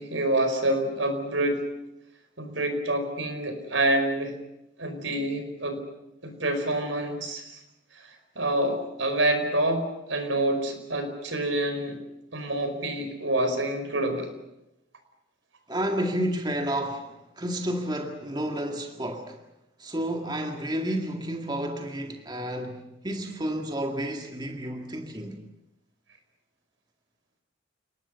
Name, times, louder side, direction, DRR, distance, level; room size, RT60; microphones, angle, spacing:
voice 1, 0.0-1.6 2.4-4.3 4.8-5.8 6.2-7.6 7.9-12.0 12.3-14.3, right 1 dB, 85° right, 5.1 m, -27 dB
voice 2, 15.7-19.4 19.8-25.4, right 1 dB, 20° right, 2.0 m, -31 dB
29.5 x 19.0 x 6.8 m
head